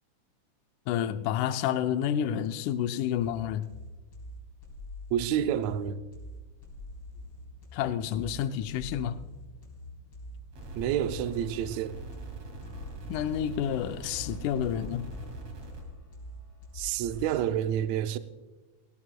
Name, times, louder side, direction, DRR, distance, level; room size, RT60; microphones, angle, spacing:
voice 1, 0.9-3.7 7.7-9.2 13.1-15.1, left 10 dB, 80° left, 2.0 m, -29 dB
sound 1, 3.2-17.5, left 1 dB, 40° left, 4.4 m, -45 dB
voice 2, 5.1-6.0 10.8-12.0 16.7-18.2, right 10 dB, 80° right, 1.6 m, -29 dB
sound 2, 10.5-15.8, right 2 dB, 60° right, 3.4 m, -43 dB
19.0 x 17.0 x 2.2 m
omnidirectional pair, 3.7 m